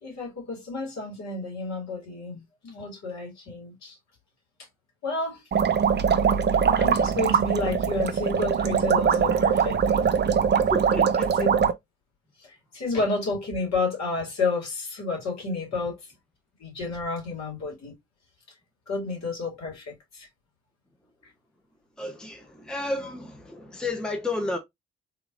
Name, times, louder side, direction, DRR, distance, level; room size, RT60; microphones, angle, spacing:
voice 1, 0.0-4.0 5.0-5.4 6.8-10.1 10.8-11.0 11.4-11.5 12.4-16.0 16.6-17.9 18.9-20.3, left 3 dB, 60° left, 2.5 m, -31 dB
sound 1, 5.5-11.7, right 7 dB, 35° right, 0.6 m, -22 dB
voice 2, 10.5-11.4 22.0-24.6, left 2 dB, ahead, 0.9 m, -32 dB
3.7 x 3.0 x 2.5 m
hypercardioid pair, 45°, 31 cm